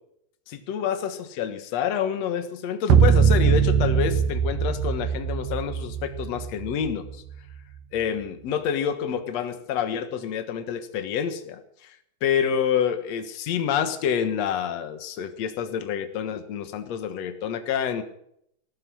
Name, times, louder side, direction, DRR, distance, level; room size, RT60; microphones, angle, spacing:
voice 1, 0.5-7.2 7.9-18.0, left 8 dB, 70° left, 8 dB, 1.6 m, -28 dB
sound 1, 2.9-7.4, right 7 dB, 70° right, 2.4 m, -21 dB
18.5 x 12.0 x 6.3 m, 0.72 s
omnidirectional pair, 5.3 m